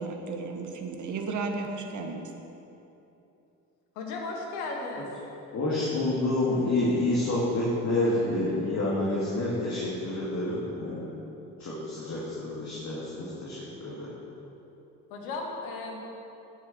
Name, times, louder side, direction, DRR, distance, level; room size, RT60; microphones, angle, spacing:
voice 1, 0.0-2.2, right 4 dB, 40° right, 3 dB, 1.7 m, -34 dB
voice 2, 4.0-5.1 15.1-16.0, left 3 dB, 70° left, 0 dB, 2.2 m, -35 dB
voice 3, 5.5-11.0 11.6-14.1, left 2 dB, 40° left, -7 dB, 2.8 m, -28 dB
15.5 x 9.3 x 4.5 m, 2.9 s
figure-of-eight pair, 55°, 44 cm